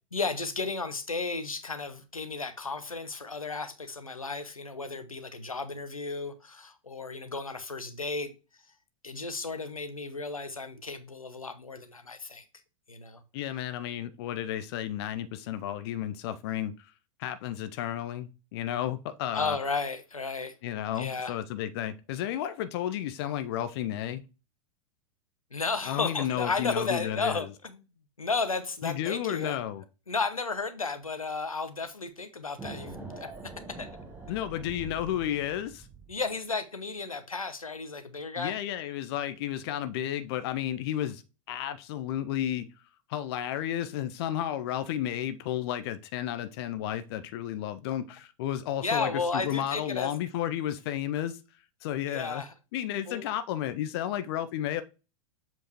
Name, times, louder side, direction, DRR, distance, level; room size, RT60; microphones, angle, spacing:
voice 1, 0.1-8.3 9.0-12.4 12.9-13.2 19.3-20.5 21.0-21.4 25.5-27.8 28.2-29.6 30.1-33.3 33.7-33.9 36.1-38.6 48.8-50.1 52.1-52.5 53.1-53.2, left 4 dB, 85° left, 0.9 m, -33 dB
voice 2, 13.3-16.9 17.2-19.6 20.6-24.2 25.8-27.5 28.8-29.8 34.3-35.9 38.4-41.2 41.5-42.7 43.1-51.4 51.8-52.4 52.7-54.8, left 11 dB, 50° left, 0.6 m, -32 dB
sound 1, 32.6-36.3, right 3 dB, 10° right, 1.7 m, -44 dB
7.3 x 4.5 x 2.9 m
figure-of-eight pair, 90°, 17 cm